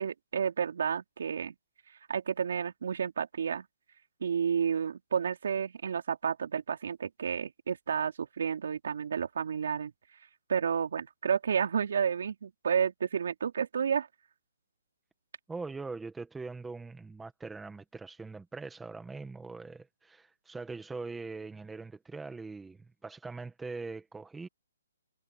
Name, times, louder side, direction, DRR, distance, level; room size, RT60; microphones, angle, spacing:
voice 1, 0.0-1.5 2.1-3.7 4.2-9.9 10.5-14.1, right 7 dB, 60° right, 3.9 m, -31 dB
voice 2, 15.5-24.5, right 4 dB, 5° right, 1.6 m, -42 dB
hypercardioid pair, 165°, 0 cm